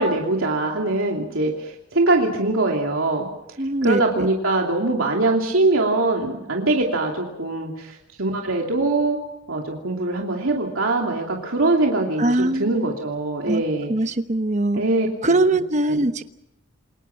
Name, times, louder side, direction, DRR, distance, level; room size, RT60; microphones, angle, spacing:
voice 1, 0.0-3.3 3.8-7.9 8.2-9.2 9.5-13.9 14.7-15.6 15.9-16.0, right 2 dB, 80° right, 0 dB, 3.0 m, -22 dB
voice 2, 3.6-4.0 12.2-12.7 13.5-13.6 13.9-14.8 15.2-16.2, right 2 dB, 35° right, 10 dB, 1.1 m, -21 dB
28.5 x 22.0 x 6.0 m, 0.86 s
head